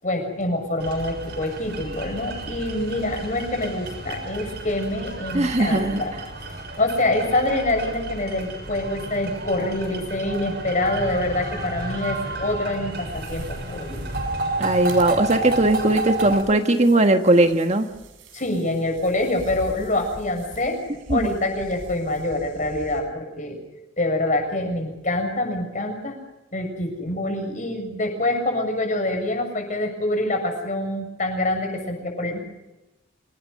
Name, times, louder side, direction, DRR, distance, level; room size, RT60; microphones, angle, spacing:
voice 1, 0.0-6.1 6.8-14.0 18.3-20.8 21.1-23.6 24.0-26.2 26.5-32.4, left 1 dB, 40° left, 4 dB, 7.2 m, -25 dB
sound 1, 0.8-16.4, right 2 dB, 55° right, 7.1 m, -32 dB
voice 2, 5.3-6.0 14.6-17.9 21.1-21.3, right 2 dB, 35° right, 6 dB, 1.4 m, -19 dB
sound 2, 12.8-23.0, right 1 dB, 80° right, 6.7 m, -41 dB
27.5 x 19.0 x 6.5 m, 1.0 s
head